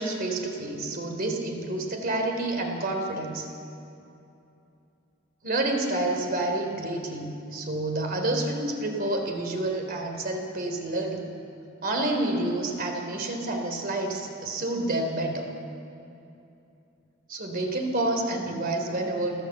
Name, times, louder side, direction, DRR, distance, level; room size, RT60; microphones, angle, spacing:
voice 1, 0.0-3.5 5.4-11.3 11.8-15.5 17.3-19.4, right 2 dB, 45° right, 3 dB, 3.2 m, -29 dB
30.0 x 11.5 x 8.3 m, 2.7 s
head